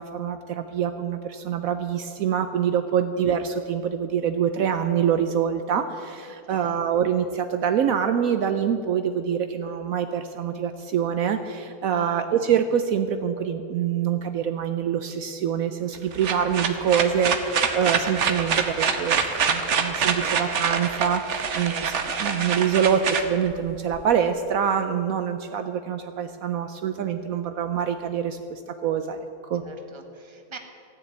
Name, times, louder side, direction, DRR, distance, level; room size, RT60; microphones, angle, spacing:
voice 1, 0.0-21.9 22.2-29.2 29.4-29.6, right 8 dB, 70° right, 8 dB, 1.0 m, -25 dB
voice 2, 6.5-6.8 11.9-12.3 21.6-22.0 29.6-30.6, right 4 dB, 20° right, 4 dB, 1.1 m, -42 dB
sound 1, 15.9-24.0, right 6 dB, 55° right, 1.2 m, -25 dB
15.5 x 7.0 x 9.4 m, 2.6 s
omnidirectional pair, 1.6 m